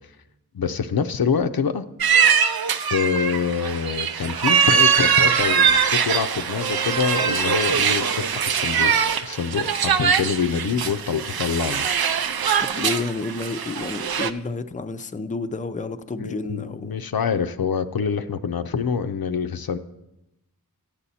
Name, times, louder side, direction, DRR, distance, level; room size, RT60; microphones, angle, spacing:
voice 1, 0.5-1.9 2.9-8.9 9.2-11.9 16.2-19.8, left 6 dB, 80° left, 0.6 m, -25 dB
sound 1, 2.0-14.3, right 7 dB, 80° right, 0.5 m, -22 dB
voice 2, 12.6-17.0, left 3 dB, 20° left, 0.4 m, -30 dB
12.0 x 8.2 x 4.2 m
wide cardioid pair, 60°, 36 cm